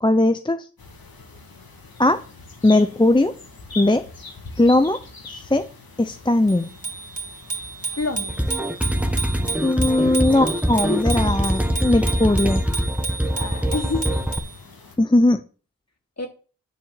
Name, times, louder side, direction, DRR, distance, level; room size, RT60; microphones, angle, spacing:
voice 1, 0.0-0.6 2.0-2.2 2.6-3.3 3.8-4.0 4.6-5.0 5.3-5.7 6.0-6.7 9.6-12.6 15.0-15.4, left 2 dB, 10° left, 10 dB, 0.7 m, -19 dB
sound 1, 0.8-15.0, left 3 dB, 70° left, 2.4 m, -42 dB
Bicycle bell, 6.5-14.6, right 4 dB, 40° right, 2.9 m, -32 dB
voice 2, 8.0-8.4 10.9-11.3 13.3-14.2 16.2-16.3, left 3 dB, 45° left, 1 dB, 3.1 m, -28 dB
sound 2, 8.3-14.4, equal, 5° right, 1.3 m, -23 dB
10.0 x 4.3 x 7.6 m, 0.37 s
cardioid pair, 45°, 37 cm